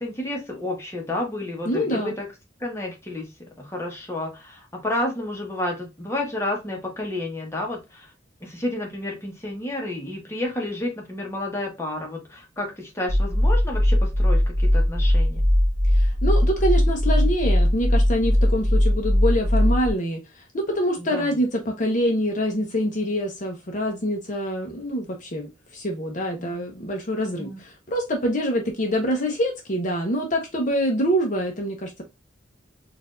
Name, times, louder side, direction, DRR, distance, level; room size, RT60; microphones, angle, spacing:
voice 1, 0.0-2.2 2.6-3.3 3.6-8.1 8.4-15.4 21.0-21.3 26.4-26.7 27.4-27.6, left 1 dB, 15° left, 1.1 m, -31 dB
voice 2, 1.7-2.1 15.9-32.0, equal, 45° left, 0.8 m, -25 dB
sound 1, 13.1-19.9, left 1 dB, 20° right, 1.4 m, -19 dB
4.2 x 2.6 x 2.4 m
head